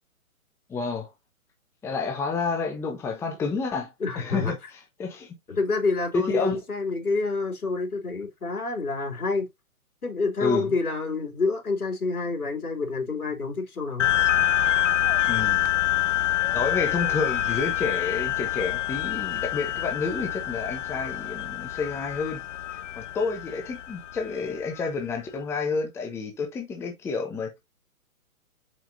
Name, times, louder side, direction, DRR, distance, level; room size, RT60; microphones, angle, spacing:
voice 1, 0.7-1.1 1.8-4.6 5.0-5.3 6.1-6.6 10.4-10.7 15.3-15.7 16.5-22.4 23.0-27.5, left 4 dB, 5° left, 0.8 m, -29 dB
voice 2, 4.0-4.5 5.5-9.5 10.0-14.1, left 3 dB, 90° left, 3.1 m, -28 dB
sound 1, 14.0-24.9, left 13 dB, 55° left, 0.6 m, -26 dB
7.1 x 5.2 x 2.6 m
hypercardioid pair, 140°, 43 cm